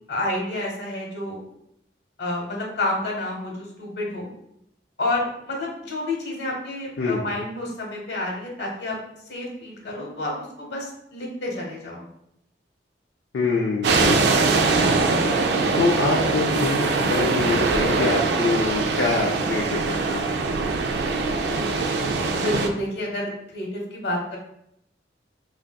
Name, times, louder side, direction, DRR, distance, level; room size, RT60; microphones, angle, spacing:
voice 1, 0.1-1.4 2.2-4.3 5.0-9.0 9.3-12.1 22.3-24.4, left 1 dB, 70° left, -1 dB, 0.9 m, -29 dB
voice 2, 13.3-15.2 15.8-20.3, left 3 dB, 85° left, -2 dB, 0.4 m, -25 dB
sound 1, 13.8-22.7, right 3 dB, 65° right, 0.3 m, -22 dB
3.4 x 2.6 x 2.2 m, 0.77 s
head